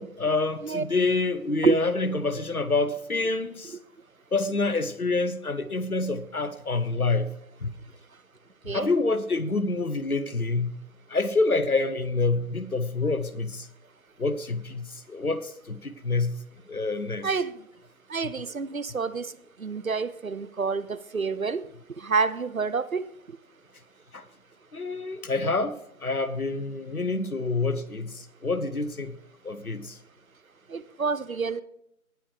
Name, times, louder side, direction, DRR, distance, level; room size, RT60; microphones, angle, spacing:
voice 1, 0.0-3.8 4.3-7.3 7.6-7.7 8.7-10.8 11.1-13.7 14.2-17.3 24.1-24.2 24.7-29.2 29.4-30.0, left 3 dB, 75° left, 14 dB, 1.1 m, -27 dB
voice 2, 18.1-19.3 19.6-21.6 22.0-23.0 30.7-31.6, right 5 dB, 65° right, 17 dB, 0.7 m, -27 dB
18.5 x 7.0 x 3.2 m, 0.78 s
figure-of-eight pair, 170°, 44 cm